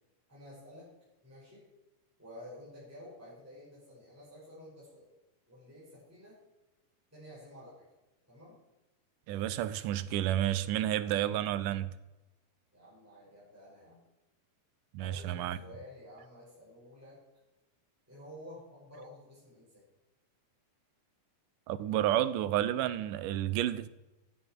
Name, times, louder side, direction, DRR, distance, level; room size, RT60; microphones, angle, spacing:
voice 1, 0.3-0.9 1.2-1.7 2.2-5.1 5.5-6.4 7.1-7.9 8.3-8.6 12.7-14.0 15.0-17.2 18.1-19.8, left 1 dB, 5° right, -8 dB, 5.7 m, -51 dB
voice 2, 9.3-11.9 14.9-15.6 21.7-23.9, right 12 dB, 80° right, 15 dB, 2.3 m, -30 dB
18.0 x 11.0 x 4.6 m, 1.0 s
omnidirectional pair, 3.8 m